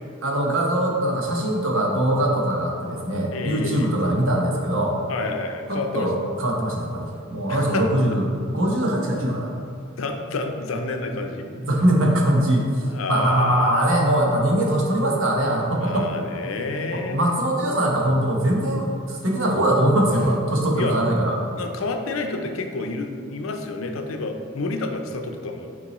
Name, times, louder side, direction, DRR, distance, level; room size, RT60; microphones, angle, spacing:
voice 1, 0.2-5.0 5.7-8.2 8.5-9.5 11.6-16.1 16.9-21.4, right 1 dB, 75° right, -1 dB, 1.0 m, -22 dB
voice 2, 3.3-3.9 5.1-6.1 7.5-7.9 9.9-11.5 12.9-13.8 15.7-17.2 20.7-21.0 21.6-25.7, left 3 dB, 90° left, 5 dB, 0.6 m, -29 dB
7.0 x 4.5 x 3.0 m, 2.4 s
head